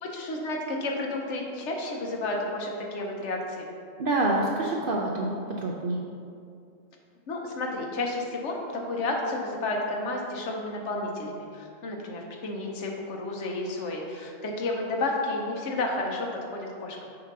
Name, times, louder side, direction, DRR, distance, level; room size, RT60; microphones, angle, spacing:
voice 1, 0.0-3.7 7.3-17.0, left 2 dB, 65° left, 0 dB, 1.0 m, -31 dB
voice 2, 4.0-6.0, right 2 dB, 60° right, -2 dB, 0.6 m, -27 dB
6.7 x 2.7 x 5.2 m, 2.4 s
omnidirectional pair, 1.4 m